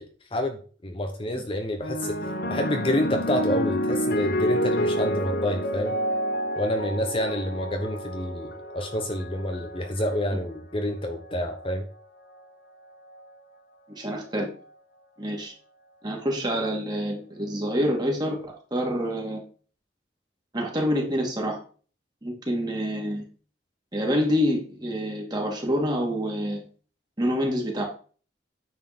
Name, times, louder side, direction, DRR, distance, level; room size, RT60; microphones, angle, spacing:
voice 1, 0.0-2.2 2.5-5.9 6.6-11.8, left 1 dB, 30° left, 4 dB, 1.0 m, -28 dB
sound 1, 1.8-10.4 11.3-11.7, equal, 55° left, 1.0 m, -29 dB
voice 2, 13.9-14.5 15.2-15.5 16.0-19.4 20.5-21.6 22.2-23.2 23.9-26.6 27.2-27.8, equal, 20° right, 0 dB, 2.5 m, -27 dB
9.4 x 4.6 x 6.1 m, 0.40 s
head